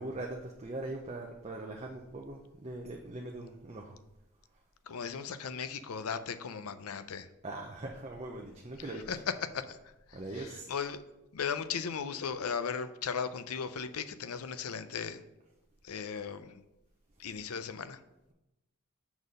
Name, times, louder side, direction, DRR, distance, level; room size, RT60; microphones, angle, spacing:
voice 1, 0.0-4.0 7.4-9.0 10.1-10.7, right 2 dB, 30° right, 0.6 m, -41 dB
voice 2, 4.9-7.3 9.1-9.2 9.5-11.0 11.3-15.2 15.8-16.6 17.2-18.0, left 6 dB, 85° left, 0.6 m, -37 dB
7.1 x 4.1 x 6.4 m
head